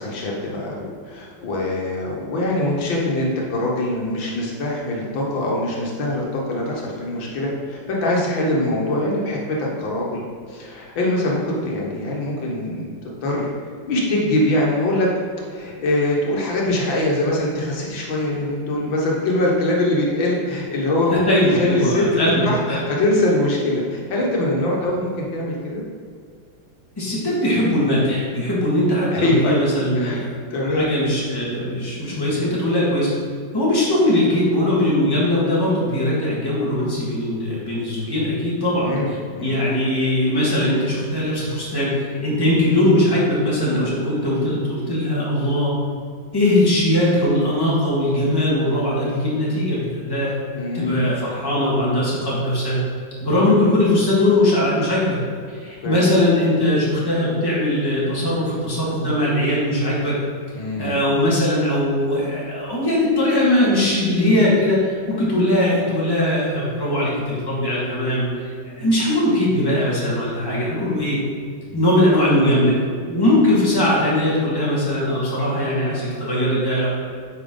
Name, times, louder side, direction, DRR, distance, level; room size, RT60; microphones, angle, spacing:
voice 1, 0.0-10.2 10.5-12.9 13.2-13.5 13.9-15.1 15.5-22.1 22.4-25.8 29.1-29.5 30.0-30.9 32.1-32.4 38.8-39.1 39.4-39.6 44.2-44.4 50.5-51.1 55.8-56.0 60.5-61.0 68.8-68.9 71.7-71.8, left 1 dB, 90° left, -3 dB, 2.1 m, -23 dB
voice 2, 21.1-22.8 27.0-30.3 30.6-33.1 33.5-39.2 39.4-45.7 46.3-50.3 50.7-52.8 53.2-55.2 55.5-60.1 60.8-68.3 68.6-71.2 71.7-72.8 73.1-76.9, left 1 dB, 10° left, -7 dB, 2.0 m, -20 dB
8.9 x 5.7 x 3.9 m, 2.1 s
omnidirectional pair, 2.0 m